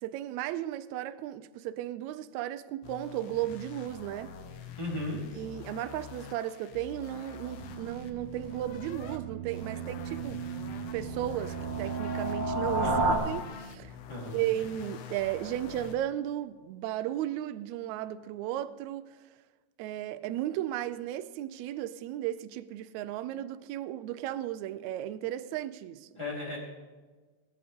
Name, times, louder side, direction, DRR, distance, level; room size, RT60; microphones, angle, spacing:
voice 1, 0.0-4.3 5.4-10.4 10.9-14.0 14.3-19.3 19.8-26.1, right 12 dB, 80° right, 1.8 m, -35 dB
sound 1, 2.8-9.2 9.5-16.0, left 7 dB, 70° left, 1.7 m, -46 dB
voice 2, 4.8-5.2 12.8-13.2 14.1-14.4 26.1-26.6, left 1 dB, 10° left, 3.4 m, -35 dB
sound 2, 7.6-13.2, right 3 dB, 55° right, 1.4 m, -33 dB
20.5 x 10.0 x 3.6 m
omnidirectional pair, 3.4 m